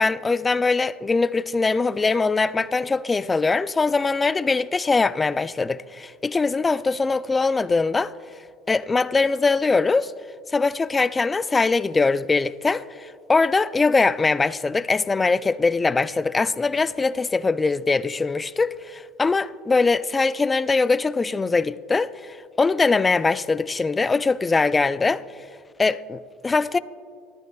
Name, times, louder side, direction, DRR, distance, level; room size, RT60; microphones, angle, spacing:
voice 1, 0.0-8.1 8.7-10.1 10.5-25.2 25.8-26.8, left 4 dB, 20° left, 0.4 m, -22 dB
26.0 x 13.5 x 2.3 m
supercardioid pair, 100°, 0 cm